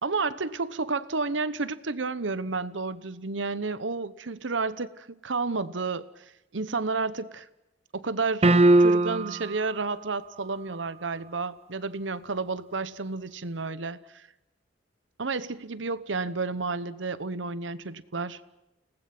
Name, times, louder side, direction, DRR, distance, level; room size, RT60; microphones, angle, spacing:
voice 1, 0.0-6.2 6.5-7.5 7.9-8.5 8.8-14.3 15.2-18.4, right 3 dB, 85° right, 15 dB, 1.1 m, -31 dB
sound 1, 8.4-9.5, right 2 dB, 35° right, 0.8 m, -19 dB
29.5 x 19.0 x 6.1 m, 0.93 s
head